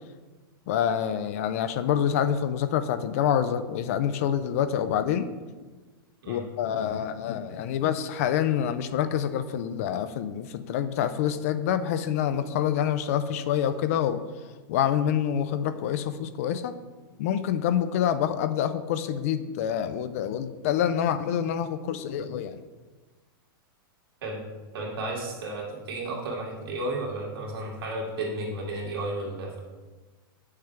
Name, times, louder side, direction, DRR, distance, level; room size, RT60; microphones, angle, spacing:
voice 1, 0.7-5.3 6.3-14.2 14.7-16.8 17.2-22.6, left 9 dB, 40° left, 11 dB, 0.4 m, -27 dB
voice 2, 24.7-29.6, right 2 dB, 80° right, -3 dB, 2.4 m, -33 dB
8.0 x 6.5 x 3.5 m, 1.3 s
supercardioid pair, 175°, 12 cm